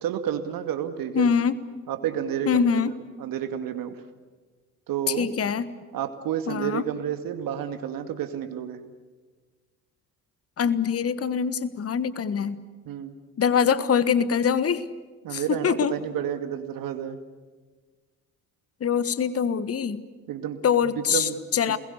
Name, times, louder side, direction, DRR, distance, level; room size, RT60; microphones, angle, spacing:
voice 1, 0.0-1.3 1.9-2.7 3.2-4.0 4.9-5.3 5.9-8.8 12.9-13.2 15.2-17.2 20.3-20.6 21.1-21.4 21.7-21.8, right 9 dB, 50° right, 8 dB, 2.3 m, -30 dB
voice 2, 1.1-1.6 2.5-2.9 5.1-5.7 6.5-6.8 10.6-12.6 13.4-14.9 15.3-16.0 18.8-20.0 20.6-21.8, left 7 dB, 30° left, 15 dB, 1.4 m, -24 dB
28.5 x 21.0 x 8.3 m, 1.3 s
figure-of-eight pair, 50°, 44 cm